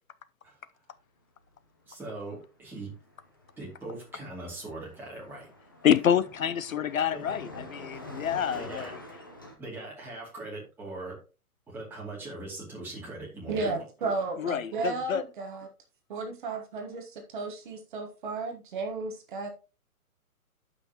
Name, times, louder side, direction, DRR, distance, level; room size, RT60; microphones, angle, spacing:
voice 1, 1.9-3.0 3.6-5.5 7.1-7.3 7.9-8.0 8.5-8.9 9.6-11.2 11.7-13.9, right 2 dB, 5° right, 2.5 m, -41 dB
Car passing by, 2.1-2.3 2.6-9.6, left 1 dB, 15° left, 0.5 m, -46 dB
voice 2, 5.8-9.0 14.4-15.2, left 9 dB, 65° left, 0.7 m, -27 dB
voice 3, 13.5-15.7 16.1-19.5, right 3 dB, 35° right, 1.3 m, -33 dB
12.5 x 5.8 x 2.9 m
hypercardioid pair, 160°, 45 cm